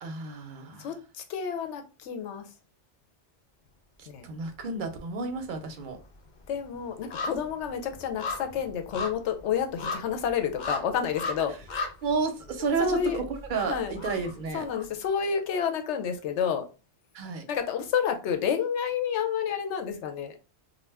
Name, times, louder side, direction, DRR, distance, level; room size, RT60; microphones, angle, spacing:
voice 1, 0.0-0.9 4.0-6.0 12.0-13.2 13.5-14.7 17.1-17.4, right 4 dB, 55° right, 0.6 m, -31 dB
voice 2, 0.8-2.5 4.1-4.3 6.5-11.5 12.8-13.2 13.7-14.0 14.5-16.6 17.5-20.4, left 7 dB, 80° left, 0.9 m, -29 dB
sound 1, 4.2-4.9 5.2-15.2 15.5-15.6, left 3 dB, 55° left, 0.6 m, -38 dB
2.4 x 2.1 x 3.3 m
omnidirectional pair, 1.2 m